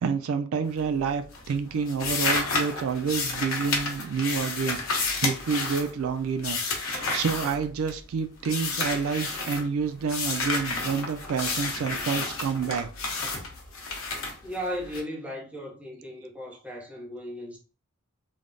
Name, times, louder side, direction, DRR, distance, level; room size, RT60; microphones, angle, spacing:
voice 1, 0.0-6.6 6.8-12.9, right 6 dB, 75° right, 0.3 m, -28 dB
sound 1, 0.6-1.1 1.3-8.1 8.4-9.6 10.1-15.0, left 3 dB, 75° left, 0.8 m, -31 dB
voice 2, 14.4-17.6, equal, 5° right, 0.6 m, -36 dB
3.3 x 2.0 x 2.5 m
head